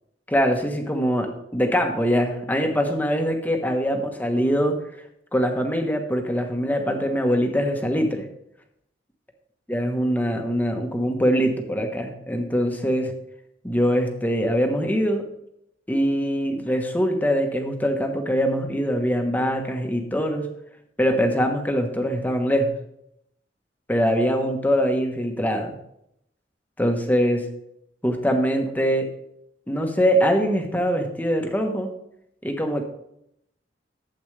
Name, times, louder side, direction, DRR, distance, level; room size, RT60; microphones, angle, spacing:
voice 1, 0.3-1.3 1.5-4.8 5.3-8.2 9.7-13.1 13.6-15.2 15.9-20.5 21.0-22.7 23.9-25.7 26.8-27.4 28.0-29.1 29.7-31.9 32.4-32.8, equal, 10° left, 4 dB, 1.1 m, -23 dB
12.0 x 7.9 x 3.3 m, 0.78 s
head